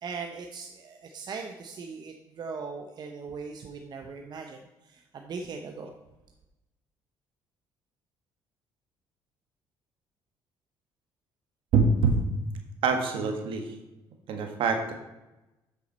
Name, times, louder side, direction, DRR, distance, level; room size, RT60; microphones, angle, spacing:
voice 1, 0.0-4.6 4.8-5.9, right 5 dB, 50° right, 3 dB, 0.8 m, -39 dB
voice 2, 11.7-12.2 12.8-13.7 14.3-14.9, right 4 dB, 70° right, 4 dB, 1.5 m, -24 dB
7.9 x 6.4 x 4.2 m, 1.0 s
supercardioid pair, 80°, 9 cm